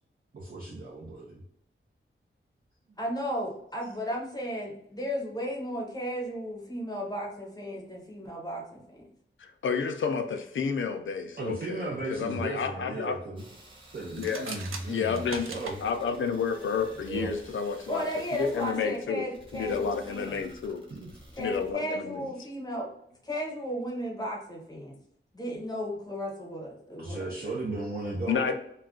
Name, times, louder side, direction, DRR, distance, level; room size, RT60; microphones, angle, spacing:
voice 1, 0.3-1.4 2.9-3.0 11.4-13.4 13.9-15.8 17.0-17.3 20.9-21.1 27.0-28.5, right 2 dB, 50° right, -3 dB, 0.6 m, -36 dB
voice 2, 3.0-9.1 17.9-20.4 21.4-22.9 23.2-25.0 25.3-27.3, equal, 20° left, -1 dB, 0.7 m, -34 dB
voice 3, 9.4-13.2 14.2-14.6 14.9-15.5 15.8-19.3 19.5-20.8 21.4-22.3 28.3-28.5, left 6 dB, 70° left, 7 dB, 0.4 m, -30 dB
sound 1, 13.4-21.7, right 1 dB, 25° right, 0.8 m, -52 dB
sound 2, 14.1-15.8, right 4 dB, 90° right, 0.4 m, -39 dB
2.4 x 2.2 x 3.6 m, 0.74 s
wide cardioid pair, 105°, 21 cm